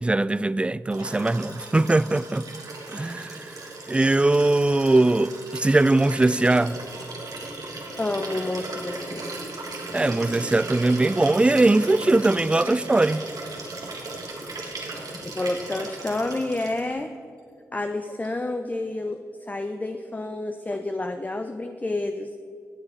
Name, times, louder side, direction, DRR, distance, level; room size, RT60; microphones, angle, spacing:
voice 1, 0.0-2.5 2.9-6.8 9.9-13.3, right 2 dB, 15° right, 0.3 m, -21 dB
Tick-tock, 0.9-2.6 2.9-3.4 3.8-6.5 6.8-16.9, left 2 dB, 85° left, 2.1 m, -52 dB
Liquid, 0.9-16.9 18.2-18.3, right 2 dB, 70° right, 1.6 m, -37 dB
voice 2, 8.0-9.3 15.1-17.1 17.7-22.4, left 2 dB, 25° left, 0.6 m, -29 dB
15.5 x 7.4 x 4.4 m
supercardioid pair, 40°, 7 cm